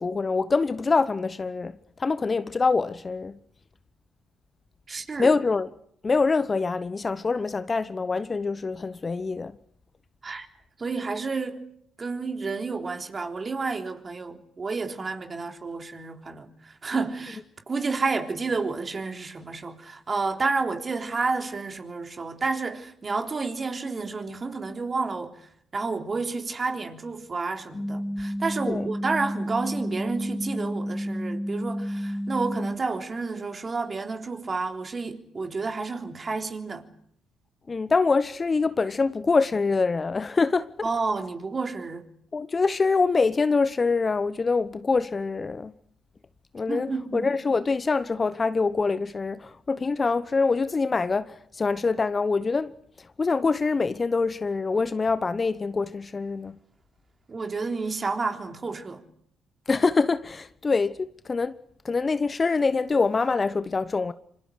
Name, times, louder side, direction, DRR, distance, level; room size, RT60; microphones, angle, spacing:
voice 1, 0.0-1.7 2.0-3.3 5.2-5.7 6.0-9.6 28.7-28.9 37.7-40.7 42.3-45.7 46.5-52.7 53.2-56.5 59.7-61.6 61.8-64.1, left 4 dB, 30° left, 0.9 m, -25 dB
voice 2, 4.9-5.3 10.2-10.5 10.8-11.6 12.0-36.9 40.8-42.0 46.7-47.3 57.3-59.0, right 4 dB, 35° right, 3.6 m, -30 dB
sound 1, 27.7-32.8, equal, 15° left, 2.2 m, -31 dB
26.5 x 26.0 x 6.5 m
hypercardioid pair, 50°, 0 cm